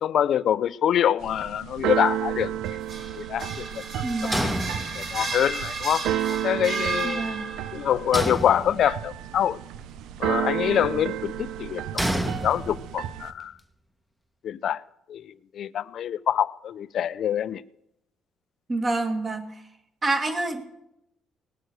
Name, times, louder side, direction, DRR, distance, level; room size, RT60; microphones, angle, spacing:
voice 1, 0.0-2.5 3.2-3.8 4.2-4.5 4.9-7.2 7.7-9.6 10.2-13.5 14.4-14.8 15.1-17.6, left 10 dB, 60° left, 0.5 m, -25 dB
Keyboard (musical), 1.2-13.3, right 11 dB, 90° right, 0.6 m, -32 dB
sound 1, 2.7-7.8, right 4 dB, 55° right, 4.7 m, -33 dB
voice 2, 4.0-4.6 7.0-7.5 18.7-19.6 20.0-20.6, right 2 dB, 25° right, 1.8 m, -27 dB
sound 2, 4.3-5.4 8.1-9.2 12.0-13.1, right 1 dB, 5° right, 1.1 m, -29 dB
19.5 x 6.6 x 7.9 m
cardioid pair, 135°, 0 cm